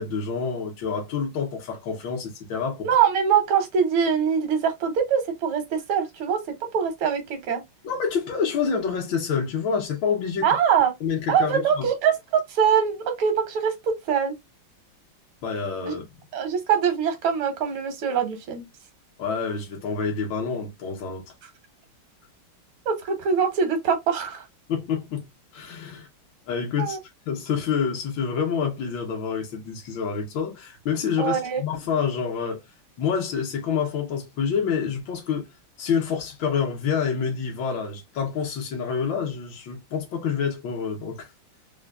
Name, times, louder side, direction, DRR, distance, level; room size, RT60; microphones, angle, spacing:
voice 1, 0.0-2.9 7.8-10.5 11.0-11.9 15.4-16.0 19.2-21.2 24.7-25.2 25.5-26.1 26.5-27.0 27.3-32.6 33.0-35.5 35.8-41.3, left 6 dB, 70° left, 1.6 m, -27 dB
voice 2, 2.8-6.4 6.7-7.6 10.4-10.9 11.3-14.3 15.9-16.0 16.3-18.6 22.9-24.5 26.8-27.0 31.2-31.6, right 7 dB, 85° right, 1.9 m, -23 dB
4.4 x 2.3 x 2.3 m
omnidirectional pair, 2.3 m